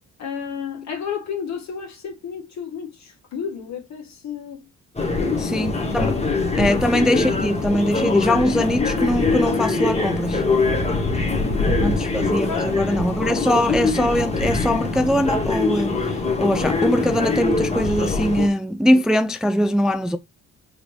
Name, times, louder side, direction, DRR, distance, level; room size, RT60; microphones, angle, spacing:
voice 1, 0.2-4.6 5.2-5.7 6.0-6.2 6.6-6.8 11.1-13.0 13.3-13.7, left 7 dB, 65° left, 1.8 m, -32 dB
sound 1, 5.0-18.5, left 3 dB, 20° left, 1.2 m, -23 dB
voice 2, 5.4-6.2 6.6-10.4 11.8-16.0 16.4-20.2, left 1 dB, ahead, 0.3 m, -21 dB
4.9 x 3.0 x 3.2 m
cardioid pair, 90°, 30 cm